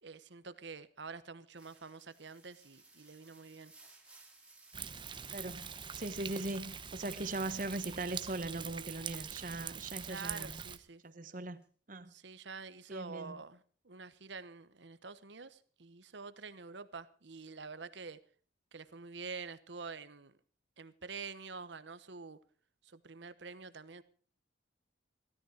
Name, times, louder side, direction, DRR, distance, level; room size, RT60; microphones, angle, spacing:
voice 1, 0.0-3.7 10.1-11.0 12.1-18.2 18.7-20.3 20.8-22.4 22.8-24.0, right 4 dB, 70° right, 1.1 m, -47 dB
sound 1, 1.6-9.4 9.7-11.1 11.6-11.7, right 3 dB, 5° right, 2.6 m, -60 dB
Thunder, 4.7-10.8, right 7 dB, 25° right, 0.8 m, -44 dB
voice 2, 5.3-10.6 11.0-11.6 11.9-12.1 12.9-13.4, right 2 dB, 45° right, 1.1 m, -40 dB
16.0 x 13.5 x 5.0 m
head